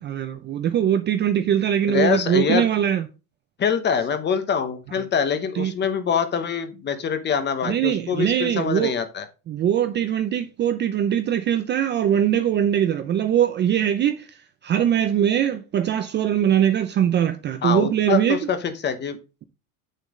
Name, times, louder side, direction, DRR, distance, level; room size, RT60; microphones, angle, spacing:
voice 1, 0.0-3.1 5.5-5.7 7.6-8.9 9.5-14.4 14.6-18.4, right 10 dB, 25° right, 0.5 m, -21 dB
voice 2, 1.9-2.6 3.6-9.2 17.6-19.2, left 7 dB, 25° left, 1.0 m, -24 dB
8.4 x 6.5 x 3.7 m
cardioid pair, 155°, 42 cm